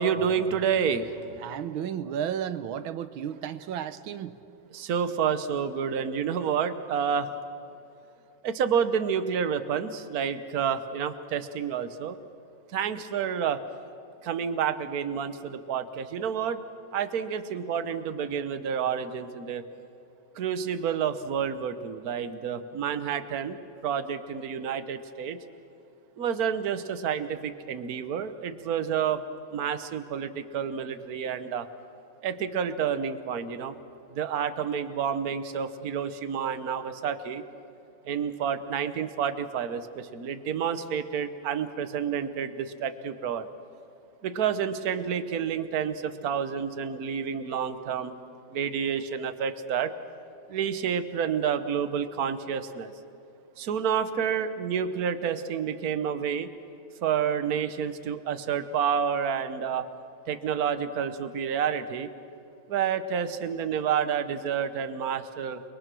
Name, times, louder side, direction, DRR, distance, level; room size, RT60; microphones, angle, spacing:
voice 1, 0.0-1.4 4.7-7.3 8.4-12.2 12.7-13.6 14.2-16.6 16.9-19.6 20.4-23.6 23.8-25.4 26.2-29.2 29.5-31.7 32.2-33.7 34.1-37.4 38.1-43.5 44.2-48.1 48.5-49.9 50.5-52.9 53.6-56.5 57.0-59.9 60.3-62.1 62.7-65.6, right 7 dB, 55° right, 10 dB, 1.4 m, -29 dB
voice 2, 1.4-4.4, right 9 dB, 85° right, 12 dB, 1.7 m, -33 dB
29.5 x 21.5 x 6.2 m, 2.8 s
omnidirectional pair, 2.2 m